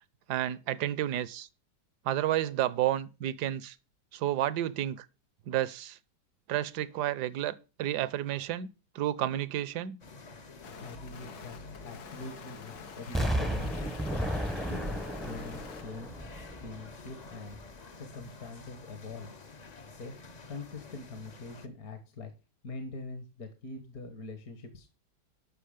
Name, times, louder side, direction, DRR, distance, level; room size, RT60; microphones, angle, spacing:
voice 1, 0.3-1.5 2.0-3.7 4.1-5.1 5.5-6.0 6.5-10.0, right 12 dB, 70° right, 1.2 m, -31 dB
sound 1, 10.0-21.7, left 3 dB, 40° left, 0.6 m, -50 dB
sound 2, 10.6-15.8, left 6 dB, 85° left, 1.9 m, -48 dB
voice 2, 10.8-14.0 14.7-16.2 16.6-19.3 19.9-22.3 22.6-24.9, left 3 dB, 55° left, 1.8 m, -44 dB
Explosion, 13.1-17.1 17.5-17.6, equal, ahead, 0.6 m, -33 dB
12.5 x 6.0 x 5.0 m
omnidirectional pair, 1.9 m